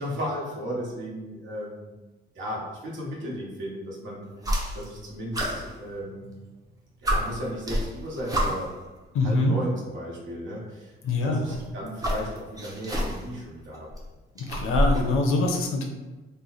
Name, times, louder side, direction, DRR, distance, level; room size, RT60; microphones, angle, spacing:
voice 1, 0.0-1.9 2.3-4.3 4.7-6.3 7.0-8.7 9.2-10.9 11.2-13.9, equal, 65° right, -4 dB, 1.2 m, -35 dB
sound 1, 4.4-5.0 5.3-6.4 6.7-6.8 7.0-8.8 9.9-10.0 11.3-13.4 13.7-15.2, equal, 15° right, 0.6 m, -28 dB
voice 2, 9.1-9.6 11.0-11.4 14.4-15.8, left 2 dB, 85° left, 2 dB, 0.7 m, -24 dB
3.2 x 2.1 x 4.0 m, 1.2 s
cardioid pair, 130°, 21 cm